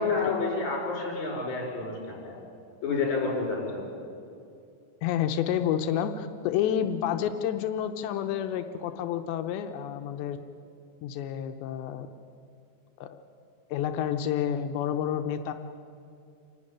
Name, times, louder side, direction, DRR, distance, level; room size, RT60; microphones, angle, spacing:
voice 1, 0.0-2.4 2.8-3.8, left 4 dB, 45° left, -1 dB, 6.5 m, -29 dB
voice 2, 5.0-10.4 11.0-12.1 13.0-13.2 13.7-15.5, left 9 dB, 85° left, 7 dB, 3.0 m, -29 dB
28.0 x 12.0 x 9.8 m, 2.5 s
omnidirectional pair, 5.0 m